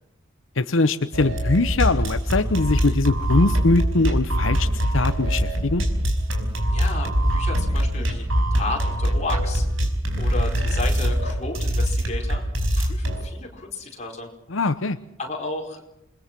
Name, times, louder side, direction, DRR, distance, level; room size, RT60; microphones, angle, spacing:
voice 1, 0.6-4.7 4.9-5.8 14.5-15.0, left 3 dB, 70° left, 10 dB, 0.9 m, -22 dB
sound 1, 1.1-13.2, equal, 75° right, 5.2 m, -23 dB
voice 2, 6.7-8.2 8.5-9.7 10.2-12.4 12.8-14.3 15.2-15.8, left 2 dB, 35° left, 1 dB, 4.8 m, -32 dB
28.5 x 21.5 x 6.1 m, 0.83 s
head